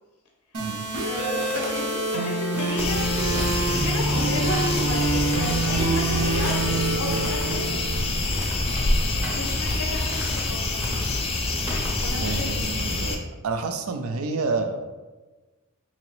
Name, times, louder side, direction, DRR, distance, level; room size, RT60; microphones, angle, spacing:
sound 1, 0.5-8.5, right 2 dB, 85° right, 0.9 m, -26 dB
voice 1, 0.8-3.1 3.7-7.8 9.3-10.8 12.0-12.7, left 2 dB, 80° left, 0 dB, 0.5 m, -33 dB
sound 2, 1.2-1.8 2.4-2.9 3.3-4.0 4.4-4.8 5.3-5.8 6.2-6.7 7.1-7.8 8.3-8.9 9.2-9.8 10.1-10.5 10.8-11.2 11.7-12.1, equal, 10° right, 0.7 m, -38 dB
sound 3, 2.8-13.2, left 2 dB, 25° left, 0.3 m, -26 dB
voice 2, 12.2-14.8, right 4 dB, 65° right, 7 dB, 0.4 m, -29 dB
3.7 x 2.9 x 3.0 m, 1.2 s
head